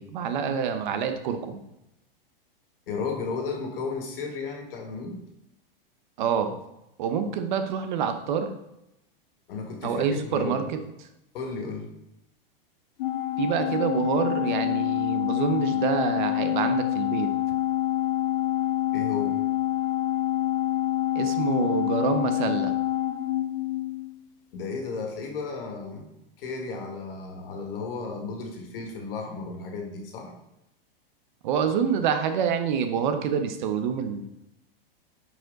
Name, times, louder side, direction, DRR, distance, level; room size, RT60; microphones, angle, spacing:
voice 1, 0.0-1.6 6.2-6.6 7.0-8.5 9.8-10.8 13.4-17.3 21.1-22.7 31.4-34.2, right 7 dB, 50° right, 8 dB, 1.0 m, -27 dB
voice 2, 2.9-5.2 9.5-10.7 11.3-11.9 18.9-19.4 24.5-26.1 26.4-30.3, left 4 dB, 70° left, 3 dB, 2.2 m, -34 dB
Organ, 13.0-24.2, left 13 dB, 35° left, 0.5 m, -27 dB
9.6 x 5.1 x 4.0 m, 0.86 s
supercardioid pair, 160°, 30 cm